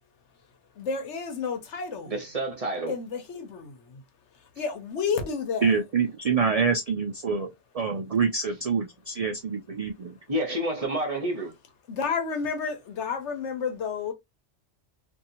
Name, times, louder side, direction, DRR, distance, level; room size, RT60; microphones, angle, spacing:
voice 1, 0.7-2.2 2.9-4.0 4.3-5.8 11.9-14.1, left 5 dB, 75° left, 1.1 m, -31 dB
voice 2, 2.1-2.9 10.3-11.5, right 1 dB, 35° right, 0.9 m, -29 dB
voice 3, 5.6-10.2, right 5 dB, 70° right, 0.3 m, -26 dB
2.8 x 2.6 x 2.6 m
omnidirectional pair, 1.2 m